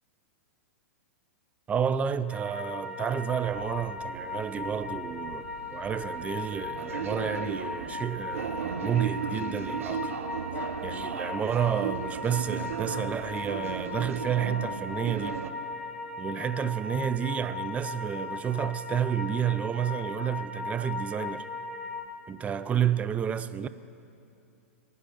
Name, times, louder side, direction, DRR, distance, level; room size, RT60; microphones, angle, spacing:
voice 1, 1.7-5.4 5.7-10.1 10.8-15.4 16.2-21.4 22.3-23.7, right 8 dB, 20° right, 0.5 m, -30 dB
sound 1, 2.3-22.0, left 3 dB, ahead, 1.5 m, -38 dB
sound 2, 3.4-15.5, right 6 dB, 75° right, 0.8 m, -37 dB
18.0 x 9.6 x 5.9 m
hypercardioid pair, 105°, 7 cm